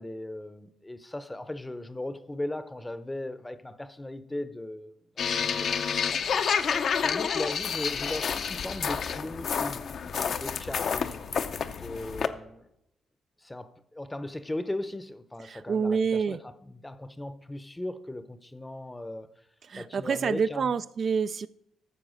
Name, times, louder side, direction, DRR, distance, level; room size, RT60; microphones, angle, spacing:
voice 1, 0.0-6.4 7.0-11.2 11.7-12.7 13.4-19.3 19.7-20.7, left 1 dB, 10° left, 0.7 m, -38 dB
sound 1, 5.2-12.3, left 6 dB, 55° left, 0.7 m, -29 dB
voice 2, 15.5-16.4 19.7-21.5, right 6 dB, 50° right, 0.3 m, -27 dB
14.0 x 4.7 x 6.3 m
cardioid pair, 90°, 0 cm